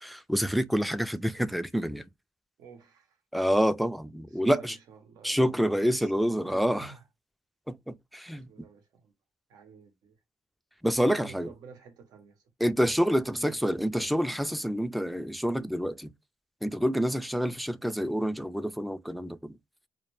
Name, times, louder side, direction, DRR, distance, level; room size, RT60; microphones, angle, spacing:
voice 1, 0.0-2.0 3.3-4.8 5.2-6.9 7.7-8.5 10.8-11.5 12.6-16.1 16.6-19.5, equal, ahead, 0.3 m, -27 dB
voice 2, 2.6-3.2 4.3-6.1 6.4-7.0 8.5-9.1 9.5-10.2 11.0-12.4 13.3-13.6, right 5 dB, 85° right, 0.7 m, -50 dB
2.2 x 2.1 x 3.0 m
cardioid pair, 75°, 6 cm